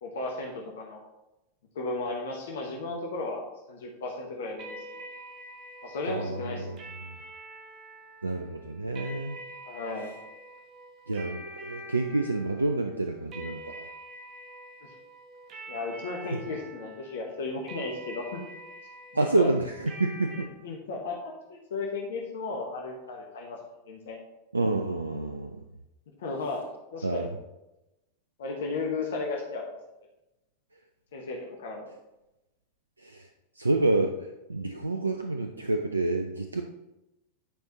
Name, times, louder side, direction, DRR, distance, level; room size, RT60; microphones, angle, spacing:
voice 1, 0.0-1.0 1.7-4.8 5.8-6.8 9.6-10.2 14.8-14.9 15.7-18.4 19.1-19.5 20.6-23.6 23.9-24.2 26.2-26.7 26.9-27.3 28.4-29.7 31.1-31.9, left 3 dB, 60° left, 1 dB, 1.2 m, -35 dB
sound 1, 4.6-20.4, right 1 dB, 35° right, 1.2 m, -45 dB
voice 2, 6.0-7.2 8.2-9.4 10.0-10.1 11.1-13.9 16.3-16.4 19.1-20.5 24.5-25.6 27.0-27.3 33.0-33.3 33.6-36.6, right 2 dB, 80° right, 5 dB, 0.4 m, -29 dB
10.5 x 4.6 x 3.0 m, 0.94 s
figure-of-eight pair, 90°, 0 cm